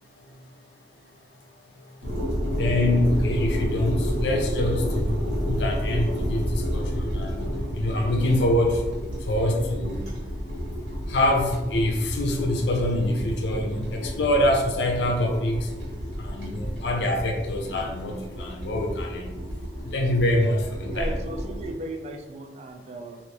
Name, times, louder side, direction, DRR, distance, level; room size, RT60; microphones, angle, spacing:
voice 1, 2.0-7.4 7.7-8.9 9.2-10.0 11.1-15.7 16.2-19.3 19.8-21.1, left 1 dB, 75° left, 2 dB, 0.5 m, -25 dB
sound 1, 2.0-21.7, equal, 80° right, 1.1 m, -30 dB
voice 2, 20.9-23.2, right 1 dB, 40° right, 4 dB, 0.3 m, -36 dB
2.8 x 2.5 x 3.3 m, 1.2 s
head